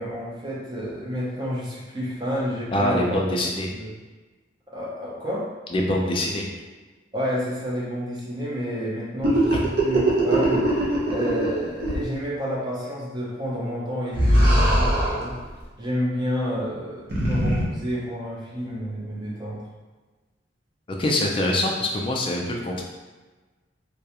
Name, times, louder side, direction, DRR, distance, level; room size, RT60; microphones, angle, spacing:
voice 1, 0.0-3.2 3.7-3.9 4.7-5.5 7.1-15.4 15.8-19.7, equal, 25° right, -6 dB, 0.6 m, -30 dB
voice 2, 2.7-3.7 5.7-6.5 21.0-22.8, left 1 dB, 30° left, -1 dB, 0.4 m, -24 dB
sound 1, 9.2-11.5 11.8-12.0 14.1-15.3 17.1-17.6, right 1 dB, 60° right, 0.6 m, -20 dB
2.3 x 2.1 x 2.8 m, 1.3 s
head